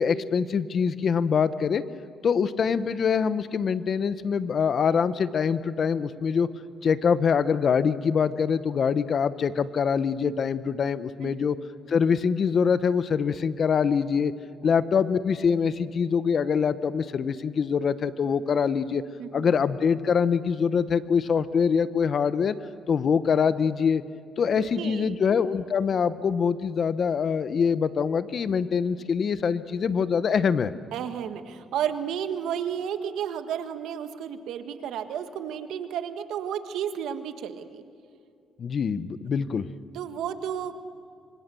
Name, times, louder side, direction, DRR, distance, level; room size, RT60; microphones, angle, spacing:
voice 1, 0.0-1.8 2.2-6.5 6.8-11.6 11.9-14.3 14.6-19.0 19.3-22.5 22.9-24.0 24.4-30.7 38.6-39.7, left 6 dB, 50° left, 14 dB, 1.0 m, -24 dB
voice 2, 24.5-25.2 30.9-37.8 39.9-40.7, right 9 dB, 85° right, 9 dB, 1.5 m, -32 dB
26.0 x 25.0 x 7.0 m, 2.4 s
cardioid pair, 90°, 0 cm